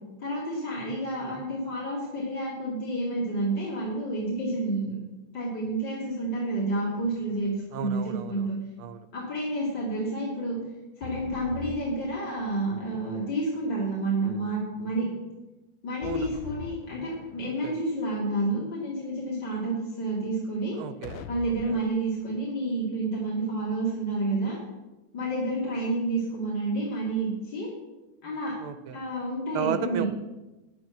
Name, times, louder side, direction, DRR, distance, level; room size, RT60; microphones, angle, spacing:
voice 1, 0.2-5.0 5.3-8.6 9.1-10.6 11.0-15.1 15.8-20.7 21.3-24.6 25.1-27.7 28.2-28.5 28.9-30.1, right 2 dB, 60° left, -6 dB, 3.2 m, -29 dB
sound 1, 7.0-7.7 11.0-12.7 16.0-17.7 21.0-21.9, left 8 dB, 80° left, 1.4 m, -43 dB
voice 2, 7.7-8.4 8.8-9.0 16.0-16.3 17.6-17.7 20.8-21.3 21.7-21.8 28.6-29.0 29.5-30.1, right 9 dB, 90° right, 10 dB, 1.6 m, -33 dB
10.5 x 8.8 x 6.1 m, 1.1 s
omnidirectional pair, 2.3 m